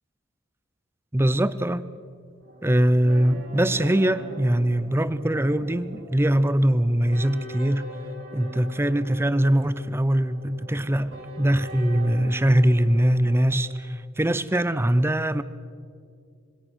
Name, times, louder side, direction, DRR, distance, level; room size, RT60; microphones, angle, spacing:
voice 1, 1.1-1.8 2.6-7.9 8.3-15.4, right 1 dB, 10° right, 0.6 m, -22 dB
sound 1, 2.4-13.5, equal, 75° right, 6.8 m, -42 dB
26.0 x 22.5 x 6.3 m
head